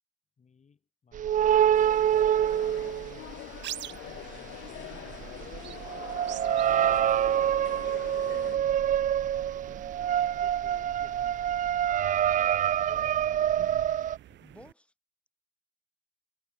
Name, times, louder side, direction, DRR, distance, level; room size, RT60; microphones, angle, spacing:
voice 1, 0.4-2.7 3.8-5.9 6.4-9.0 10.4-12.1 13.3-13.9 14.3-14.4, left 6 dB, 40° left, 4.0 m, -57 dB
sound 1, 1.1-3.6 4.0-14.2, right 10 dB, 45° right, 0.4 m, -26 dB
sound 2, 1.7-8.6, left 17 dB, 80° left, 0.5 m, -44 dB
sound 3, 2.2-14.7, right 13 dB, 80° right, 3.0 m, -48 dB
voice 2, 6.5-6.9 9.5-10.0 12.8-13.3 14.4-14.9, left 1 dB, 5° left, 4.6 m, -55 dB
cardioid pair, 90°, 18 cm